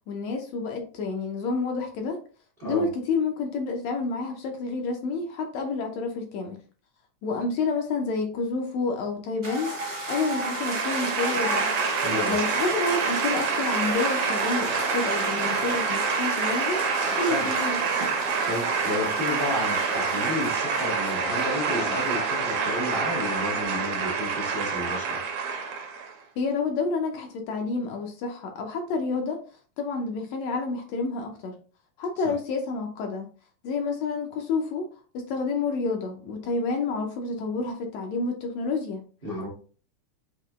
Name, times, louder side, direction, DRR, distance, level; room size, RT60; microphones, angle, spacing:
voice 1, 0.1-2.2 2.6-6.6 7.2-9.8 10.1-11.7 12.3-17.8 26.4-29.4 29.8-31.6 32.0-33.3 33.6-34.9 35.1-39.0, left 4 dB, 75° left, 3 dB, 1.6 m, -29 dB
sound 1, 9.4-22.1, right 1 dB, 35° right, 0.7 m, -35 dB
sound 2, 10.1-26.1, right 5 dB, 85° right, 2.3 m, -27 dB
voice 2, 12.0-12.3 17.2-17.5 18.4-25.2 32.2-32.3 39.2-39.5, left 1 dB, 70° right, -5 dB, 0.5 m, -32 dB
sound 3, 13.9-23.6, equal, ahead, 0.4 m, -38 dB
5.9 x 2.7 x 2.3 m, 0.40 s
omnidirectional pair, 3.4 m